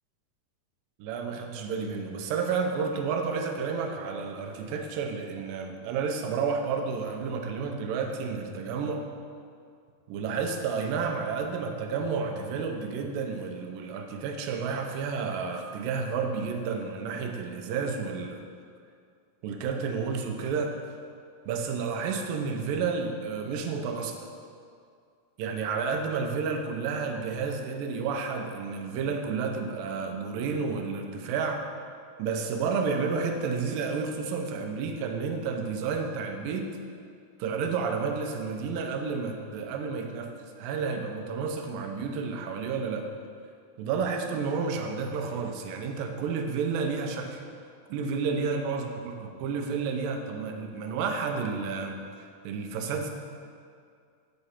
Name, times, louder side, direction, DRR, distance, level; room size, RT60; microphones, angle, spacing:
voice 1, 1.0-9.1 10.1-18.4 19.4-20.8 21.5-24.2 25.4-31.7 32.2-36.8 37.4-43.1 43.8-47.4 47.9-52.0 52.4-53.1, right 5 dB, 85° right, 4 dB, 2.5 m, -31 dB
7.9 x 5.3 x 7.3 m, 2.3 s
omnidirectional pair, 4.0 m